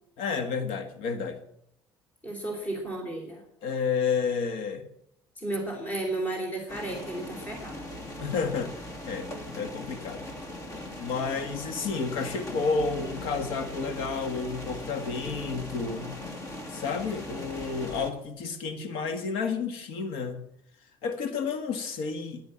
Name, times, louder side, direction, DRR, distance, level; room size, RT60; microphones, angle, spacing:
voice 1, 0.2-1.4 3.6-4.9 8.2-10.2 11.0-16.2 16.7-20.5 21.0-22.4, left 5 dB, 75° left, 8 dB, 1.6 m, -31 dB
voice 2, 2.2-3.4 5.4-7.8, right 2 dB, 15° left, 2 dB, 3.1 m, -33 dB
sound 1, 6.7-18.1, left 1 dB, 35° left, 2.6 m, -39 dB
11.0 x 10.5 x 8.7 m, 0.76 s
cardioid pair, 155°, 9 cm